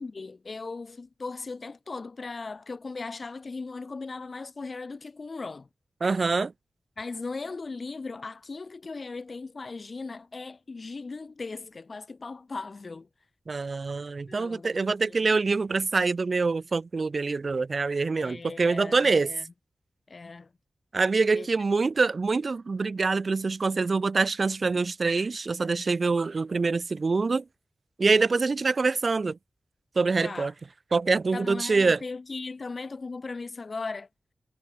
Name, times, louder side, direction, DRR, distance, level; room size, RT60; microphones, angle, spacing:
voice 1, 0.0-5.7 7.0-13.1 14.3-15.3 18.2-19.5 20.1-20.5 21.3-21.5 30.2-30.5 31.3-34.1, left 3 dB, 45° left, 4.8 m, -38 dB
voice 2, 6.0-6.5 13.5-19.3 20.9-27.4 28.0-29.4 29.9-30.5 30.9-32.0, right 4 dB, 50° right, 1.2 m, -25 dB
wide cardioid pair, 120°, 0 cm